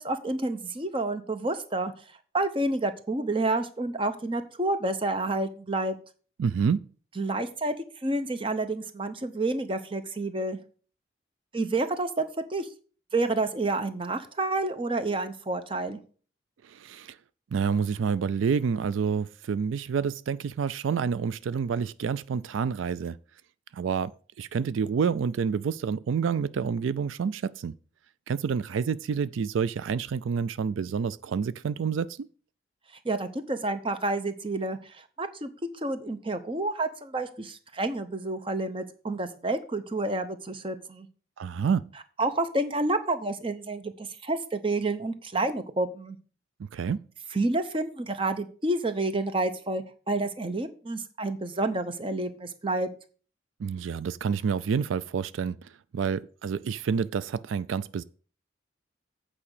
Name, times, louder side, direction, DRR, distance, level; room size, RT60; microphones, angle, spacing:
voice 1, 0.0-1.9 2.3-5.9 7.2-7.7 8.0-10.6 11.5-12.7 13.1-16.0 33.0-35.5 35.8-41.1 42.2-46.2 47.3-52.9, right 2 dB, 25° right, 0.7 m, -29 dB
voice 2, 6.4-6.9 16.6-17.2 17.5-23.2 23.7-27.7 28.3-32.2 41.4-41.9 46.6-47.0 53.6-58.0, right 6 dB, 85° right, 0.4 m, -28 dB
8.5 x 4.9 x 6.5 m
head